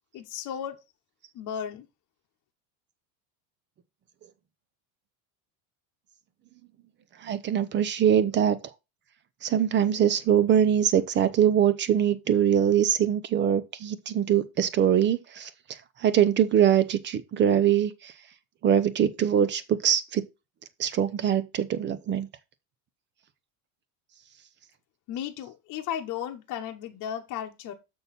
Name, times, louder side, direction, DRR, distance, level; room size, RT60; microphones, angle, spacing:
voice 1, 0.1-0.8 1.3-1.9 25.1-27.7, left 9 dB, 40° left, 1.0 m, -34 dB
voice 2, 7.2-8.6 9.4-15.5 16.0-18.1 18.6-20.2 20.8-22.3, right 9 dB, 25° right, 0.5 m, -23 dB
7.0 x 6.2 x 4.1 m
cardioid pair, 155°, 47 cm